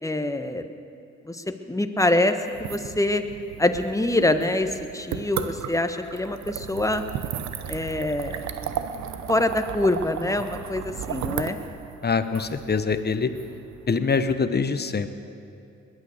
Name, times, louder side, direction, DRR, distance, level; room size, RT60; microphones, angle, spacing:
voice 1, 0.0-0.6 1.2-3.2 3.6-7.0 7.7-8.4 9.3-11.6, left 2 dB, 10° left, 8 dB, 1.3 m, -25 dB
sound 1, 2.4-14.3, right 8 dB, 70° right, 0.9 m, -35 dB
voice 2, 12.0-13.3 13.9-15.1, left 5 dB, 35° left, 11 dB, 1.1 m, -24 dB
21.0 x 9.6 x 6.7 m, 2.7 s
supercardioid pair, 60°, 29 cm